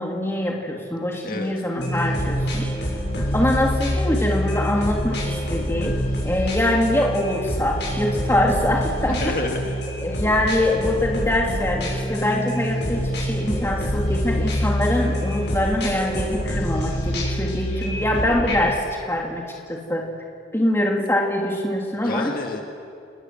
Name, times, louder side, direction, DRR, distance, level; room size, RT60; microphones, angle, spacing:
voice 1, 0.0-2.7 3.3-6.0 6.2-9.2 10.0-18.8 19.1-19.4 19.7-20.1 20.5-22.3, left 1 dB, 15° left, -1 dB, 2.7 m, -23 dB
sound 1, 1.8-18.7, equal, 65° left, 7.4 m, -26 dB
voice 2, 9.1-9.7 22.0-22.6, left 2 dB, 50° left, 2 dB, 2.2 m, -28 dB
28.5 x 19.5 x 7.6 m, 2.4 s
head